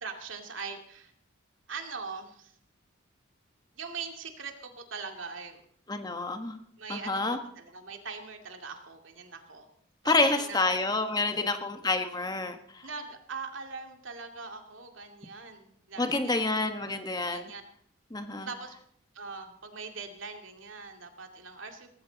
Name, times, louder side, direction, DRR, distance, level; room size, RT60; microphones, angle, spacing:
voice 1, 0.0-1.1 1.7-2.5 3.8-5.6 6.8-9.7 10.0-10.6 11.2-11.3 12.8-16.4 17.3-17.6 18.4-18.7 19.1-21.9, right 5 dB, 90° right, 4 dB, 2.5 m, -41 dB
voice 2, 5.9-6.6 6.9-7.4 10.0-12.8 16.0-17.5 18.1-18.5, left 3 dB, 20° left, 7 dB, 1.4 m, -28 dB
18.0 x 15.5 x 4.1 m, 0.65 s
head